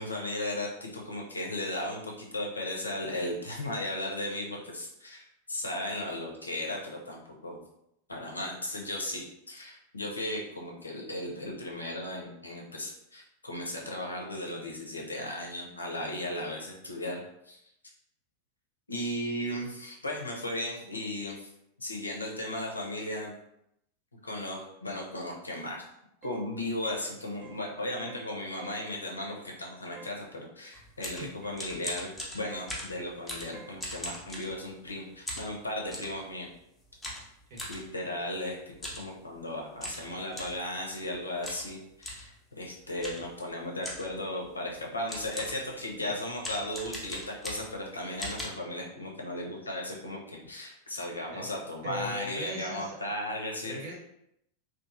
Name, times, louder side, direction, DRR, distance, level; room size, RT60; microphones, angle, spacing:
voice 1, 0.0-7.6 8.1-17.6 18.9-21.5 21.8-23.3 24.2-25.8 26.2-36.5 37.7-38.6 39.0-42.3 42.6-53.7, left 1 dB, 80° left, 0 dB, 0.6 m, -36 dB
sound 1, 26.2-26.5 26.8-27.1 27.4-27.7 28.1-28.3 28.6-28.9 30.0-30.2 31.4-31.7 32.5-32.8 33.5-33.8, right 4 dB, 25° right, 0.4 m, -50 dB
sound 2, 30.7-34.9 35.3-36.2 37.0-37.8 38.7-39.1 39.4-39.5 39.8-40.6 41.4-41.7 42.0-42.3 43.0-43.3 43.8-44.2 44.7-44.8 45.1-45.7 46.4-47.8 48.2-48.4, left 1 dB, 10° left, 0.7 m, -39 dB
voice 2, 51.8-53.0 53.6-54.0, equal, 55° right, -3 dB, 0.9 m, -38 dB
2.9 x 2.4 x 2.4 m, 0.78 s
figure-of-eight pair, 90°, 0 cm